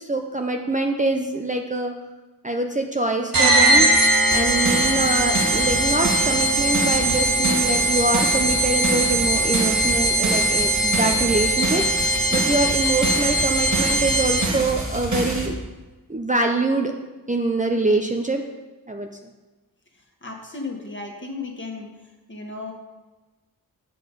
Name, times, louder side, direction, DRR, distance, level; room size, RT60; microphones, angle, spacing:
voice 1, 0.0-1.9 2.4-3.9 4.3-15.6 16.1-16.9 17.3-18.4 18.9-19.1, right 2 dB, 20° right, 3 dB, 0.6 m, -24 dB
sound 1, 3.3-14.7, right 1 dB, 70° right, 1.2 m, -21 dB
sound 2, 4.3-15.5, right 2 dB, 55° right, 1.7 m, -28 dB
voice 2, 20.2-21.9 22.3-22.7, left 3 dB, 30° left, 1 dB, 1.7 m, -34 dB
7.7 x 5.9 x 5.2 m, 1.2 s
cardioid pair, 45°, 36 cm